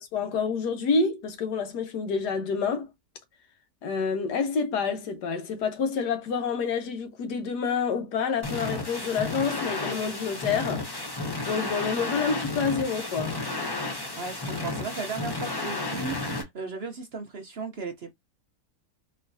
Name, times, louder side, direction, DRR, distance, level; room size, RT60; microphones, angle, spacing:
voice 1, 0.1-2.9 3.8-10.9 11.4-13.4, left 5 dB, 85° left, 1.5 m, -28 dB
sound 1, 8.4-16.4, left 2 dB, 20° left, 0.6 m, -32 dB
voice 2, 14.2-18.1, right 4 dB, 50° right, 0.8 m, -36 dB
4.4 x 3.0 x 2.6 m
omnidirectional pair, 1.7 m